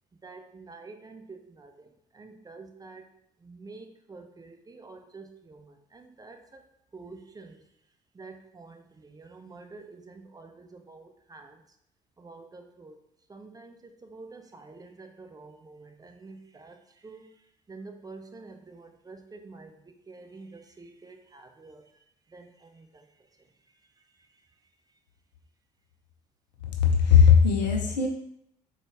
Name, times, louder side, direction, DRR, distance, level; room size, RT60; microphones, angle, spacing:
voice 1, 0.2-1.2 2.2-3.0 3.5-3.8 4.1-4.5 4.8-5.3 6.2-6.4 6.9-7.4 8.2-8.7 9.2-10.0 10.4-10.5 10.9-11.0 11.3-11.4 12.2-12.9 13.3-13.5 14.1-15.5 16.2-16.3 17.0-17.2 17.7-19.2 19.4-19.7 20.1-20.5 20.8-21.1 21.6-21.8 22.3-22.4, right 3 dB, 20° right, 5 dB, 0.5 m, -46 dB
voice 2, 26.8-28.1, left 7 dB, 85° left, 2 dB, 0.5 m, -18 dB
4.0 x 2.3 x 3.2 m, 0.76 s
figure-of-eight pair, 50°, 21 cm